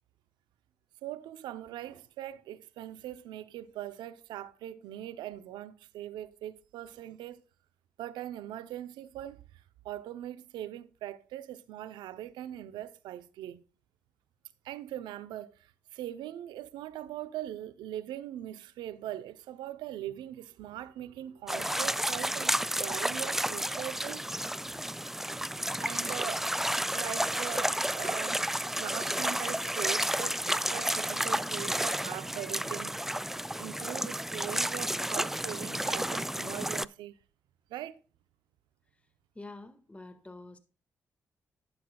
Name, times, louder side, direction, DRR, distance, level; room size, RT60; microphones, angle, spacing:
voice 1, 1.0-7.4 8.0-13.6 14.6-24.2 25.8-26.5 26.9-28.5 28.7-33.1 33.6-37.2 37.7-38.0, right 12 dB, 85° right, 0.6 m, -41 dB
sound 1, 21.5-36.9, right 1 dB, 5° right, 0.3 m, -31 dB
voice 2, 39.3-40.6, left 2 dB, 15° left, 1.7 m, -47 dB
11.5 x 9.5 x 2.3 m
hypercardioid pair, 45°, 7 cm